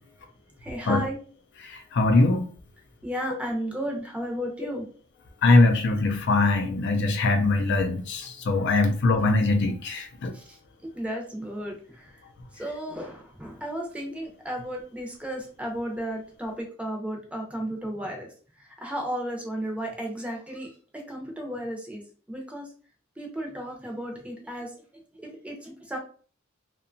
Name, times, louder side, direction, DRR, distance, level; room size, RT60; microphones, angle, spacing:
voice 1, 0.6-1.2 3.0-4.9 8.8-9.0 10.3-10.6 11.0-12.1 12.5-18.3 18.6-22.0 22.3-22.7 23.2-26.0, equal, 5° right, 0 dB, 0.6 m, -34 dB
voice 2, 1.6-2.5 5.4-10.3, left 2 dB, 60° left, 6 dB, 0.4 m, -22 dB
2.7 x 2.2 x 2.5 m, 0.41 s
head